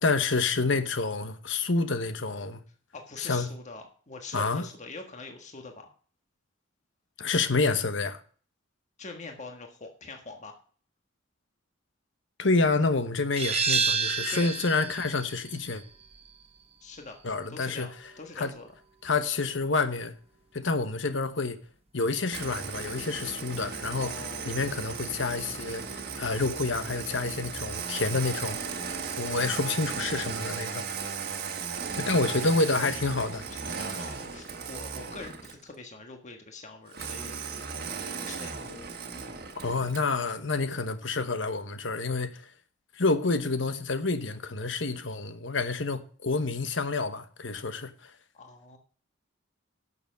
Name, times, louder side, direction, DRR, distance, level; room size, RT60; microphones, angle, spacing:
voice 1, 0.0-2.6 3.2-3.5 4.3-4.7 7.2-8.2 12.4-15.8 17.2-17.9 18.4-18.5 19.0-20.1 20.5-21.6 21.9-24.1 24.4-28.8 29.2-30.9 31.9-33.5 39.6-42.4 43.0-48.1, left 3 dB, 70° left, 1.1 m, -28 dB
voice 2, 2.9-5.9 9.0-10.6 14.3-14.5 16.8-17.2 17.5-17.9 18.2-18.7 23.9-24.6 31.8-32.5 33.6-38.9 48.3-48.8, left 3 dB, 40° left, 1.5 m, -44 dB
sound 1, 13.4-18.8, right 5 dB, 30° right, 0.9 m, -31 dB
Engine starting, 22.3-35.7 36.9-40.1, right 5 dB, 55° right, 1.4 m, -36 dB
11.0 x 7.0 x 6.5 m
head